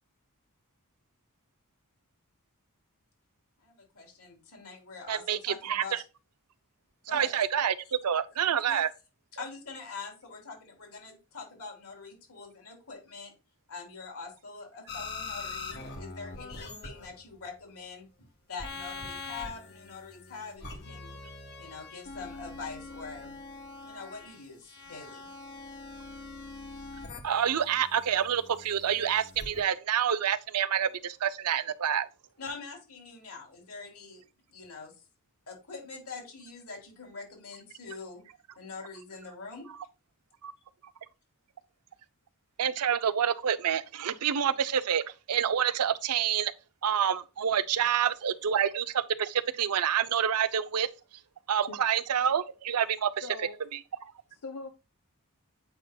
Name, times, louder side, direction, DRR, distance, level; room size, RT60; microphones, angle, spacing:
voice 1, 3.6-6.0 7.1-7.4 8.6-8.8 9.4-13.3 13.7-21.1 21.6-23.3 23.8-25.2 32.4-34.2 34.5-34.9 35.5-38.2 38.6-39.7, left 4 dB, 70° left, 3.0 m, -44 dB
voice 2, 5.1-6.0 7.1-8.9 27.2-32.1 40.4-40.5 42.6-46.5 46.8-50.9 51.5-53.2 54.0-54.1, right 8 dB, 85° right, 0.5 m, -28 dB
sound 1, 14.9-17.4 18.6-29.6, left 3 dB, 50° left, 1.5 m, -43 dB
voice 3, 53.2-53.6 54.3-54.7, left 3 dB, 85° left, 0.8 m, -41 dB
8.0 x 5.5 x 2.3 m
head